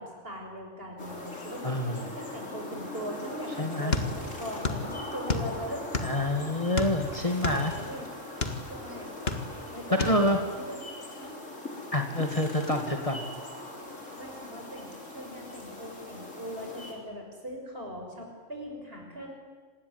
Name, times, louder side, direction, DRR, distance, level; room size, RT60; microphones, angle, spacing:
voice 1, 0.0-5.8 7.5-8.1 8.7-9.1 9.7-10.1 10.5-10.8 11.2-11.4 14.2-19.4, equal, 50° right, 2 dB, 6.6 m, -40 dB
sound 1, 1.0-16.9, left 2 dB, 85° left, 4.7 m, -41 dB
voice 2, 1.6-2.1 3.6-3.9 6.0-7.7 10.0-10.4 11.9-13.2, left 1 dB, 30° left, 4 dB, 2.3 m, -27 dB
sound 2, 3.9-4.9 5.1-6.3 6.7-8.6 9.1-9.7 10.0-10.2, left 4 dB, 55° left, 2.2 m, -29 dB
27.0 x 20.0 x 9.6 m, 1.5 s
omnidirectional pair, 1.3 m